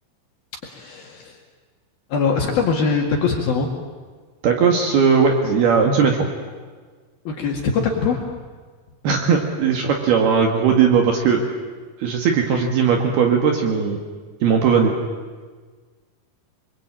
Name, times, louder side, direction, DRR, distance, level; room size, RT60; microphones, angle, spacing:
voice 1, 0.6-1.4 2.1-3.7 7.3-8.3, left 5 dB, 60° left, 0 dB, 3.5 m, -22 dB
voice 2, 4.4-6.2 9.0-11.4 12.0-14.0 14.4-14.9, right 6 dB, 60° right, 3 dB, 3.5 m, -18 dB
27.5 x 22.5 x 8.9 m, 1.5 s
omnidirectional pair, 5.5 m